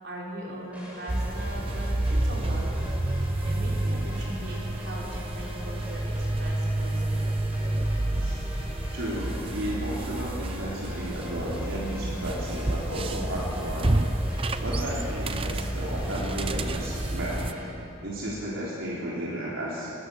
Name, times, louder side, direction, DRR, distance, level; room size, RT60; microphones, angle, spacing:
voice 1, 0.0-2.8 3.2-7.2, equal, 55° right, -4 dB, 5.5 m, -39 dB
sound 1, 0.7-17.6, equal, 5° right, 6.1 m, -43 dB
sound 2, 1.1-17.5, right 1 dB, 25° right, 0.7 m, -29 dB
voice 2, 8.9-14.1 14.6-17.4 18.0-19.9, equal, 75° right, -6 dB, 4.0 m, -33 dB
25.0 x 21.0 x 7.2 m, 3.0 s
head